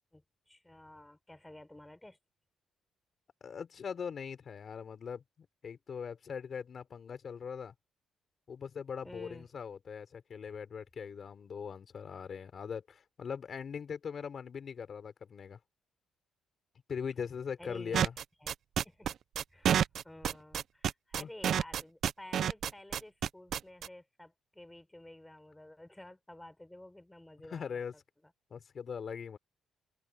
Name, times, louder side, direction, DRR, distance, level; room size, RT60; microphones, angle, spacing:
voice 1, 0.1-2.2 9.0-9.5 10.4-10.5 17.6-18.1 18.4-18.5 18.8-19.1 19.5-27.8, left 1 dB, 10° left, 4.8 m, -51 dB
voice 2, 3.4-7.7 8.5-15.6 16.9-18.1 21.1-21.3 27.4-27.9 28.5-29.4, left 6 dB, 50° left, 4.4 m, -41 dB
sound 1, 17.9-23.9, right 9 dB, 65° right, 0.5 m, -29 dB
cardioid pair, 90°, 0 cm